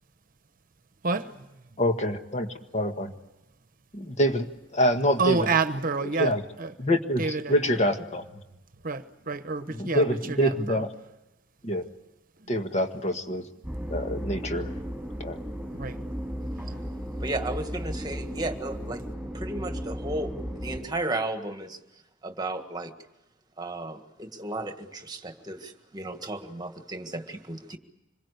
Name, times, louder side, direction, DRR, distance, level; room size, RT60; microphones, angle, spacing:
voice 1, 1.8-2.5 2.7-3.1 3.9-4.5 4.7-5.5 6.2-6.4 6.8-8.2 9.7-10.9 11.6-11.8 12.5-13.4 13.9-14.7 15.2-15.4, equal, 35° left, 6 dB, 1.6 m, -26 dB
voice 2, 5.2-6.7 7.2-7.5 8.8-10.8 15.7-16.0, right 4 dB, 45° right, 11 dB, 1.1 m, -28 dB
sound 1, 13.6-20.8, equal, ahead, 5.9 m, -35 dB
voice 3, 17.2-19.0 19.3-20.3 20.6-21.8 22.2-22.9 23.6-27.8, right 2 dB, 20° right, 7 dB, 1.7 m, -34 dB
26.0 x 22.0 x 8.3 m, 0.99 s
head